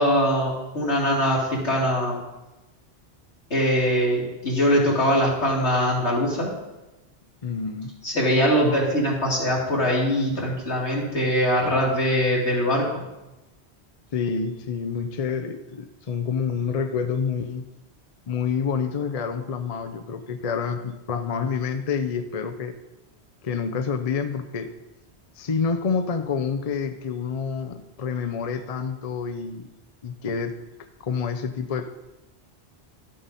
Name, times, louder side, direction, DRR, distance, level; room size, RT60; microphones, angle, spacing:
voice 1, 0.0-2.2 3.5-6.5 8.0-13.0, equal, 85° left, -3 dB, 2.9 m, -22 dB
voice 2, 7.4-8.0 14.1-17.7 18.3-22.7 23.4-24.7 25.4-29.7 30.0-30.6 31.0-31.9, left 6 dB, 40° left, 7 dB, 0.6 m, -28 dB
12.5 x 7.6 x 4.1 m, 1.0 s
omnidirectional pair, 1.1 m